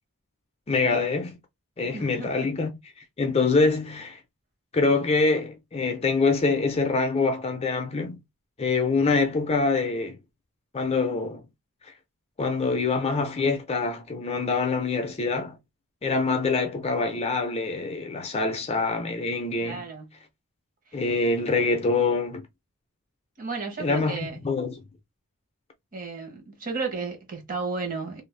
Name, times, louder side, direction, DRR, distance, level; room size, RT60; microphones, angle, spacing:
voice 1, 0.7-1.4 1.8-2.7 3.2-4.2 4.7-8.2 8.6-10.2 10.7-11.5 12.4-15.6 16.0-19.9 20.9-22.5 23.8-24.8, left 3 dB, 30° left, 0.5 m, -25 dB
voice 2, 1.9-2.5 19.6-20.1 23.4-24.4 25.9-28.2, right 4 dB, 40° right, 1.0 m, -33 dB
2.5 x 2.0 x 3.2 m
head